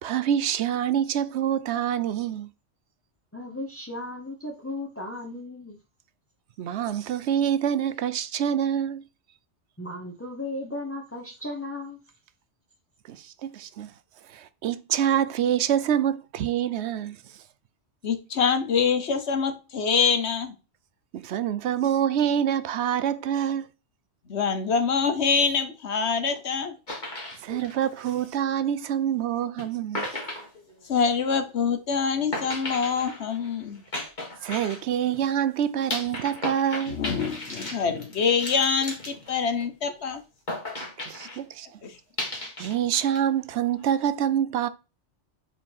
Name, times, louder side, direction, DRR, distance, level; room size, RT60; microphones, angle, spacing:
voice 1, 0.0-2.5 6.6-9.0 13.0-13.9 14.3-17.4 21.1-23.7 27.4-30.1 34.4-37.0 41.0-41.8 42.6-44.7, right 9 dB, 70° right, 0.8 m, -26 dB
voice 2, 3.3-5.7 9.8-12.0, left 2 dB, 10° left, 1.3 m, -35 dB
voice 3, 18.0-20.5 24.3-26.8 30.8-33.8 36.9-40.2 41.8-42.0, left 6 dB, 65° left, 1.3 m, -25 dB
sound 1, 26.9-28.6 29.6-29.7 29.9-31.3 32.3-35.2 35.9-39.9 40.5-41.4 42.2-43.2 43.5-44.1, left 1 dB, 40° left, 2.1 m, -36 dB
5.0 x 4.6 x 5.6 m
omnidirectional pair, 1.2 m